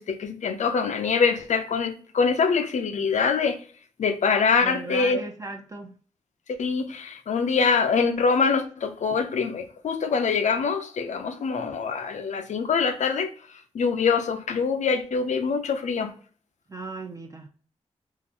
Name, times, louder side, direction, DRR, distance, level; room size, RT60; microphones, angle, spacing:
voice 1, 0.0-3.6 4.0-5.2 6.5-13.3 13.7-16.1, left 5 dB, 85° left, 0.6 m, -24 dB
voice 2, 4.6-5.9 16.7-17.5, right 3 dB, 25° right, 0.5 m, -37 dB
3.7 x 2.5 x 2.8 m
wide cardioid pair, 155°, 12 cm